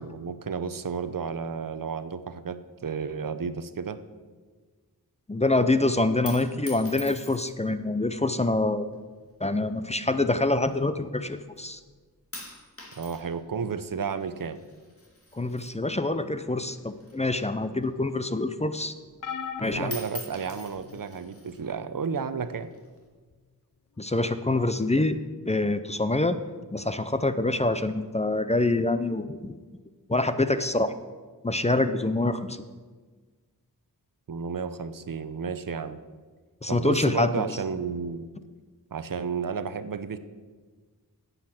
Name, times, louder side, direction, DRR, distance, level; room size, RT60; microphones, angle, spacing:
voice 1, 0.0-4.0 13.0-14.6 19.7-22.7 34.3-36.0 36.7-38.3 38.9-40.2, right 6 dB, 65° right, 12 dB, 0.8 m, -32 dB
voice 2, 5.3-8.9 9.4-11.8 15.3-18.9 19.6-19.9 24.0-25.2 25.5-26.4 26.7-29.6 30.1-30.9 31.4-32.6 36.6-37.5, left 2 dB, 20° left, 11 dB, 0.6 m, -26 dB
sound 1, 6.3-7.7 8.6-9.0 9.8-11.2 11.6-11.9 12.3-16.4 16.7-18.3 18.7-18.8 19.2-19.6 19.8-21.6 22.4-23.0, left 2 dB, 40° left, 2.4 m, -44 dB
sound 2, 19.2-21.0 21.8-22.0 23.3-23.4, left 7 dB, 60° left, 0.7 m, -38 dB
10.0 x 8.2 x 7.5 m, 1.4 s
wide cardioid pair, 95°, 36 cm